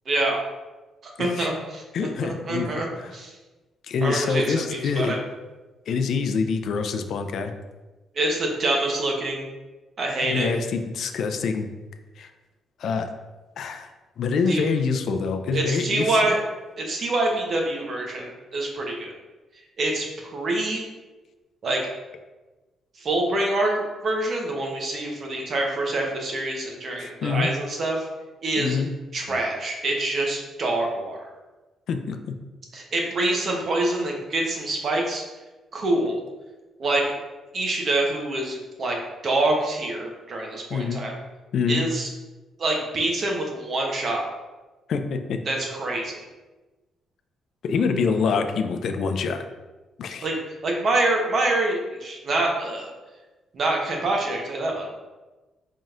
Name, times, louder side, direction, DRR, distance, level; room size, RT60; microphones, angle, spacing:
voice 1, 0.1-0.4 1.0-2.9 3.1-3.3 4.0-5.2 8.1-9.5 10.0-10.5 14.5-14.6 15.5-16.4 16.8-19.1 19.8-20.8 21.6-21.8 23.0-23.7 24.0-28.1 28.4-28.8 29.1-31.2 32.7-35.2 35.7-36.2 36.8-37.2 37.5-39.0 39.2-41.2 41.7-42.1 42.6-44.2 45.5-46.2 50.2-52.9 53.5-54.9, right 2 dB, 50° right, 0 dB, 0.9 m, -26 dB
voice 2, 1.2-1.5 1.9-2.7 3.0-3.1 3.9-5.2 5.9-7.5 10.2-11.7 12.2-12.3 12.8-13.1 13.6-13.9 14.2-16.3 27.0-27.5 28.6-28.9 29.3-29.4 31.9-32.3 40.7-41.0 41.5-41.8 44.9-45.4 47.6-49.4 50.0-50.3, left 5 dB, 65° left, 6 dB, 0.4 m, -25 dB
4.1 x 3.7 x 2.4 m, 1.2 s
cardioid pair, 90°, 0 cm